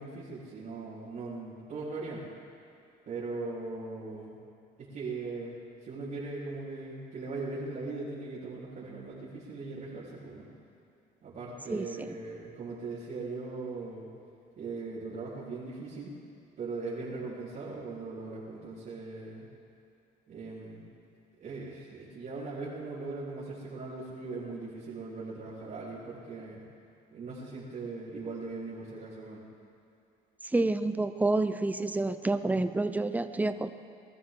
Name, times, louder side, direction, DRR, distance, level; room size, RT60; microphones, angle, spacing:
voice 1, 0.0-2.4 3.1-4.4 4.8-5.5 5.8-10.5 11.2-14.1 14.6-16.1 16.6-19.5 20.3-20.8 21.4-26.6 27.1-29.4, right 3 dB, 50° right, -11 dB, 4.2 m, -39 dB
voice 2, 11.7-12.1 30.4-33.7, right 2 dB, 10° right, 10 dB, 0.6 m, -29 dB
22.0 x 13.5 x 3.8 m, 2.6 s
cardioid pair, 110°, 17 cm